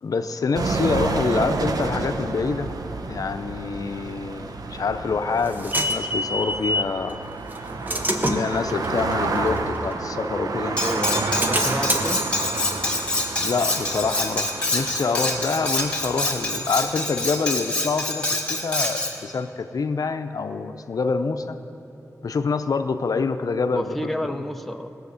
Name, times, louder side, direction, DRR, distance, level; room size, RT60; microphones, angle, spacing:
voice 1, 0.0-2.7 3.1-7.2 8.2-10.8 13.4-21.6 22.2-24.4, left 4 dB, 75° left, 8 dB, 0.6 m, -26 dB
sound 1, 0.5-17.3, right 3 dB, 80° right, 0.8 m, -30 dB
sound 2, 4.8-7.0 7.5-10.6 11.0-14.5, equal, 30° right, 1.0 m, -29 dB
Cutlery silverware, 10.8-19.1, left 2 dB, 15° left, 1.9 m, -26 dB
voice 2, 10.8-12.2 23.7-24.9, left 1 dB, ahead, 6 dB, 0.6 m, -30 dB
18.5 x 6.4 x 8.1 m, 3.0 s
wide cardioid pair, 115°, 6 cm